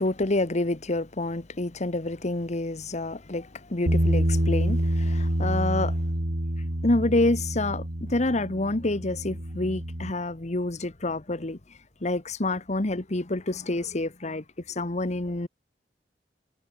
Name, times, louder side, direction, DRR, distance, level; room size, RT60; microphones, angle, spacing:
voice 1, 0.0-6.0 6.6-15.5, left 2 dB, 40° left, 1.3 m, -28 dB
Bass guitar, 3.9-10.1, right 1 dB, 75° right, 3.0 m, -27 dB
head